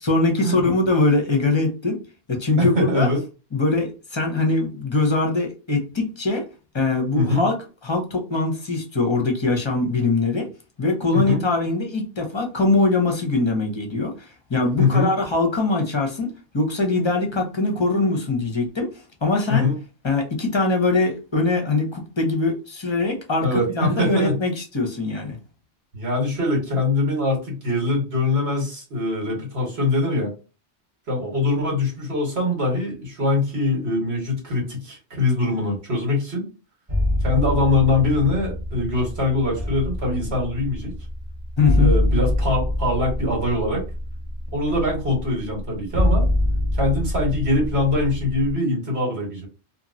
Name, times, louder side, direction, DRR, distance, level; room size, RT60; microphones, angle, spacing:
voice 1, 0.0-2.0 2.3-3.1 3.5-6.4 6.7-7.6 7.8-10.5 10.8-19.7 20.0-23.5 23.7-25.4 41.6-42.0, left 3 dB, 30° left, 0.7 m, -22 dB
voice 2, 2.6-3.2 7.1-7.5 11.1-11.4 14.8-15.1 19.5-19.8 23.4-24.4 25.9-30.3 31.1-36.5 37.2-40.9 41.7-43.8 44.5-46.2 46.7-49.5, left 2 dB, 75° right, 1.6 m, -23 dB
sound 1, 36.9-48.5, left 1 dB, 35° right, 0.8 m, -25 dB
2.9 x 2.6 x 2.6 m
omnidirectional pair, 1.1 m